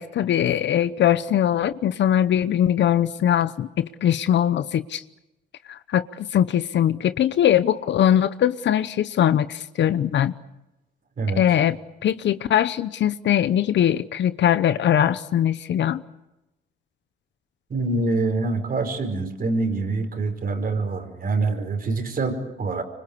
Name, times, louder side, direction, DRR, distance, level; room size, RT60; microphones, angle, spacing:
voice 1, 0.0-5.0 5.7-10.3 11.4-11.8 12.0-16.0, left 10 dB, 65° left, 0.9 m, -21 dB
voice 2, 17.7-22.8, right 3 dB, 45° right, 5.1 m, -25 dB
25.5 x 25.0 x 8.5 m
cardioid pair, 90°, 20 cm